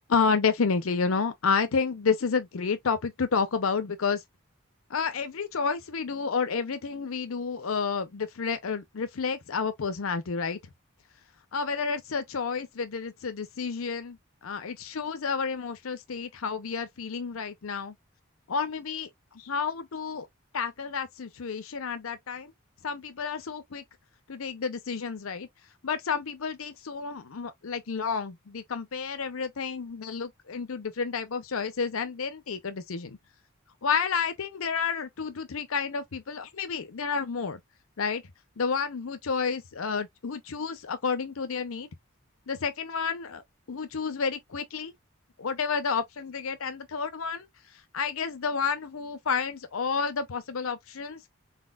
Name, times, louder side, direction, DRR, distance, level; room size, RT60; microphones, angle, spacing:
voice 1, 0.1-4.2 4.9-10.6 11.5-17.9 18.5-20.3 20.5-22.5 22.8-23.8 24.3-25.5 25.8-33.2 33.8-37.6 38.0-38.2 38.6-41.9 42.5-43.4 43.7-44.9 45.4-47.4 47.7-51.2, left 5 dB, 80° left, 0.6 m, -30 dB
4.1 x 4.1 x 2.3 m
head